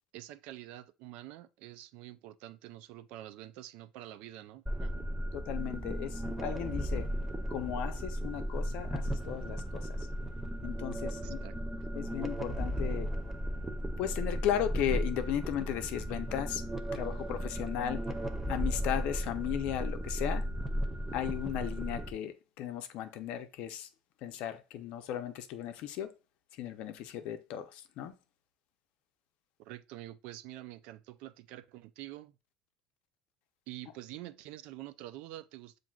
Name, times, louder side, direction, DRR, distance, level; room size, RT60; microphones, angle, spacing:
voice 1, 0.1-5.1 11.2-11.5 29.7-32.3 33.7-35.8, right 14 dB, 70° right, 0.3 m, -47 dB
sound 1, 4.7-22.1, equal, 10° right, 0.5 m, -35 dB
voice 2, 5.3-7.1 7.5-10.1 10.6-11.4 11.9-13.1 14.0-16.6 16.9-18.1 18.5-20.5 21.1-23.9 24.2-26.1 26.5-28.1, left 10 dB, 65° left, 0.5 m, -36 dB
7.2 x 2.6 x 2.3 m
supercardioid pair, 110°, 2 cm